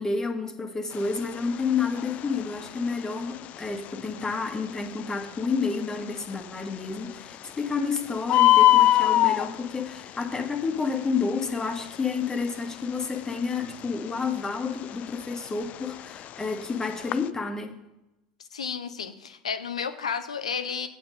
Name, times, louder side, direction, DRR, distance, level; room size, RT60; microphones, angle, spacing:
voice 1, 0.0-17.8, left 5 dB, 15° left, 5 dB, 1.5 m, -30 dB
Bird, 0.9-17.3, left 15 dB, 40° left, 0.4 m, -27 dB
voice 2, 18.5-20.9, left 6 dB, 80° left, 9 dB, 0.7 m, -32 dB
8.6 x 7.1 x 5.4 m, 0.94 s
figure-of-eight pair, 75°, 3 cm